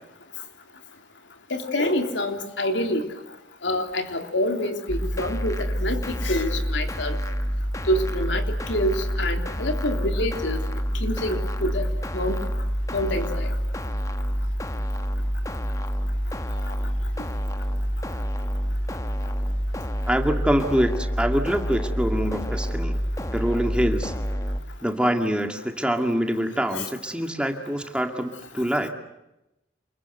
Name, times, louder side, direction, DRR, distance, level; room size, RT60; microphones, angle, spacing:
voice 1, 1.5-3.0 3.6-7.2 7.9-10.6 11.0-11.9 12.1-12.4 12.9-13.5 26.7-26.8, left 1 dB, 85° left, 5 dB, 3.3 m, -26 dB
sound 1, 4.9-24.6, equal, 15° left, 1.2 m, -27 dB
voice 2, 20.1-23.0 23.3-24.1 24.8-28.9, equal, 5° right, 5 dB, 2.0 m, -25 dB
28.0 x 22.5 x 7.9 m, 0.90 s
head